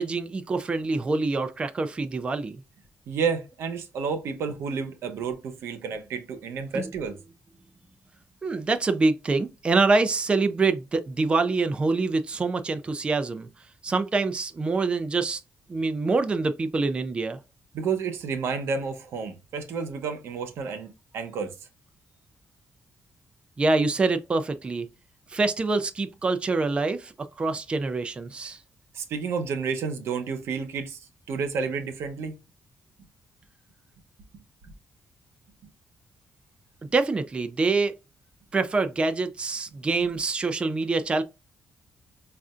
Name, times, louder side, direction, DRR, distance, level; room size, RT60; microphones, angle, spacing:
voice 1, 0.0-2.6 6.7-7.0 8.4-15.4 15.7-17.4 23.6-24.9 25.3-28.6 36.9-37.9 38.5-41.2, right 3 dB, 25° right, 0.4 m, -25 dB
voice 2, 3.1-7.1 17.7-21.5 28.9-31.0 31.3-32.3 34.6-34.7, right 5 dB, 90° right, 0.8 m, -30 dB
5.3 x 2.4 x 2.4 m
cardioid pair, 125°, 4 cm